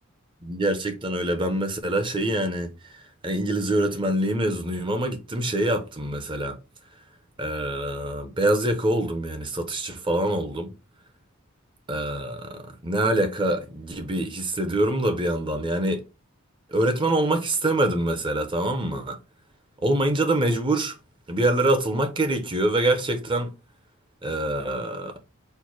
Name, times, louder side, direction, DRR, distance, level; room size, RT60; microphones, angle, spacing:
voice 1, 0.4-6.6 7.4-10.7 11.9-16.0 16.7-19.2 19.8-20.9 21.3-23.5 24.2-25.2, right 1 dB, 25° right, 0.7 m, -25 dB
4.5 x 2.1 x 4.6 m
head